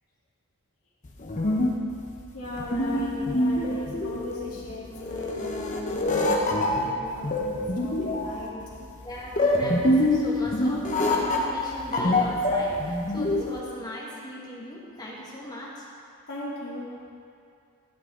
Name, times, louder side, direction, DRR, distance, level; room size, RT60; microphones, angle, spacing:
sound 1, 1.0-13.6, left 1 dB, 35° left, 0.9 m, -25 dB
voice 1, 2.3-8.5 16.3-16.9, left 2 dB, 70° left, -8 dB, 2.5 m, -38 dB
voice 2, 9.0-15.9, left 1 dB, 20° left, -5 dB, 1.5 m, -38 dB
11.5 x 7.4 x 3.8 m, 2.4 s
head